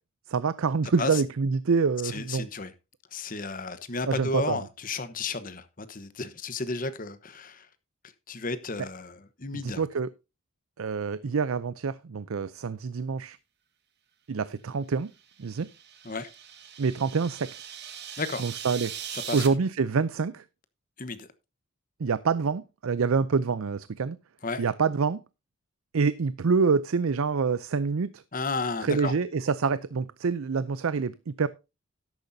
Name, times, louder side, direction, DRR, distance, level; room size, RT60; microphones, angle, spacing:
voice 1, 0.3-2.5 4.1-4.6 9.5-10.1 10.8-13.4 14.3-15.1 15.4-15.7 16.8-17.5 18.4-18.9 19.3-20.4 22.0-24.2 24.6-25.2 25.9-28.2 28.8-31.5, right 5 dB, 70° right, 0.5 m, -26 dB
voice 2, 2.0-2.7 3.1-7.7 8.3-9.8 16.0-16.3 18.2-18.5 19.1-19.4 21.0-21.3 24.4-24.6 28.3-29.1, left 3 dB, 40° left, 1.0 m, -33 dB
sound 1, 15.3-19.5, right 9 dB, 50° right, 1.5 m, -40 dB
13.0 x 10.5 x 2.7 m
head